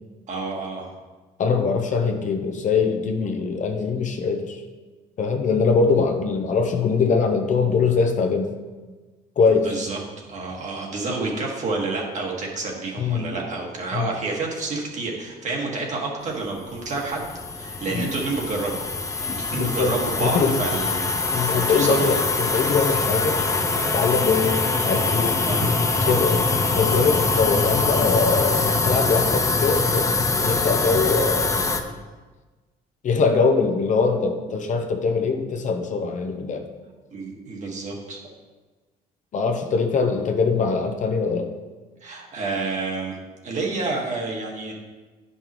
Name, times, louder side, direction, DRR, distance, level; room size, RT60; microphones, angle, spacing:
voice 1, 0.3-0.9 9.6-10.0 10.3-17.3 17.6-18.8 19.2-22.2 25.5-25.7 26.0-26.1 37.1-38.2 42.0-43.2 43.4-44.7, right 3 dB, 45° right, -1 dB, 1.7 m, -29 dB
voice 2, 1.4-4.6 5.2-8.5 9.4-9.8 13.0-13.3 13.9-14.1 17.9-18.1 19.3-20.6 21.3-23.4 23.9-25.4 26.1-26.4 26.8-30.1 30.4-31.6 33.0-36.7 39.3-41.5, left 5 dB, 45° left, 5 dB, 0.8 m, -22 dB
sound 1, 16.6-31.8, left 3 dB, 20° left, 0.6 m, -23 dB
9.9 x 5.5 x 3.0 m, 1.3 s
cardioid pair, 110°, 17 cm